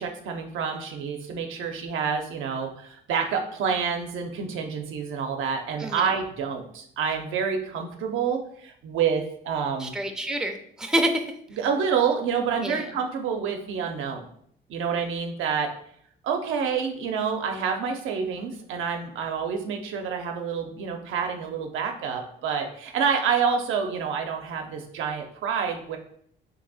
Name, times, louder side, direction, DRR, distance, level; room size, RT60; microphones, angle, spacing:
voice 1, 0.0-9.9 11.6-14.3 14.7-15.7 16.2-26.0, right 6 dB, 85° right, 3 dB, 0.6 m, -28 dB
voice 2, 9.8-11.2 12.6-12.9, right 1 dB, 5° right, 5 dB, 0.4 m, -27 dB
2.8 x 2.7 x 4.0 m, 0.66 s
cardioid pair, 90°, 20 cm